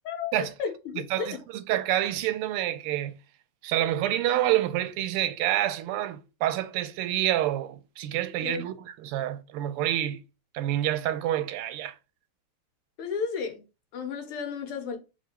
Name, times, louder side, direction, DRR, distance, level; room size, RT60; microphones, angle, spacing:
voice 1, 0.0-1.4 8.4-8.6 13.0-13.6 13.9-15.0, left 6 dB, 90° left, 1.9 m, -33 dB
voice 2, 1.0-3.2 3.6-10.2 10.5-11.9, right 12 dB, 90° right, 1.5 m, -28 dB
3.7 x 3.2 x 4.3 m
omnidirectional pair, 2.4 m